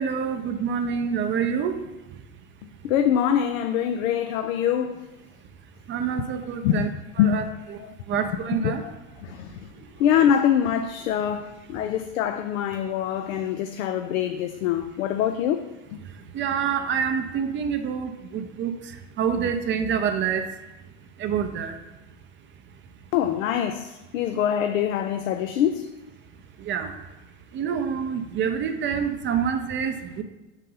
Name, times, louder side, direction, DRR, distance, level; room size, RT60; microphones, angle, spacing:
voice 1, 0.0-1.8 5.9-6.9 7.2-7.4 8.1-8.8 9.8-9.9 16.0-20.5 21.2-21.8 26.6-26.9 27.5-30.2, right 7 dB, 30° right, 0.5 m, -27 dB
voice 2, 2.8-5.0 6.6-6.9 7.2-7.5 8.6-8.9 9.2-9.5 10.0-15.6 23.1-25.9, left 9 dB, 80° left, 0.5 m, -24 dB
6.4 x 4.1 x 3.9 m
hypercardioid pair, 100°, 40 cm